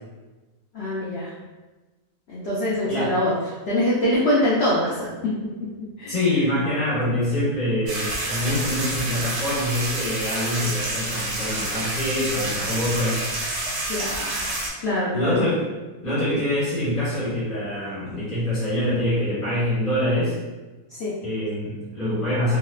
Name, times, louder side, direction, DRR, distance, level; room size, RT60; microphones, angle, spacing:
voice 1, 0.7-1.3 2.3-5.1 6.0-6.1 13.9-14.5 14.8-15.3 20.9-21.1, left 1 dB, 75° left, -7 dB, 0.6 m, -24 dB
voice 2, 6.1-13.2 15.1-15.6 16.0-20.3 21.2-22.6, left 1 dB, 30° left, -11 dB, 1.2 m, -25 dB
sound 1, 7.9-14.7, right 2 dB, 65° right, 0.7 m, -28 dB
2.8 x 2.1 x 2.3 m, 1.2 s
omnidirectional pair, 1.6 m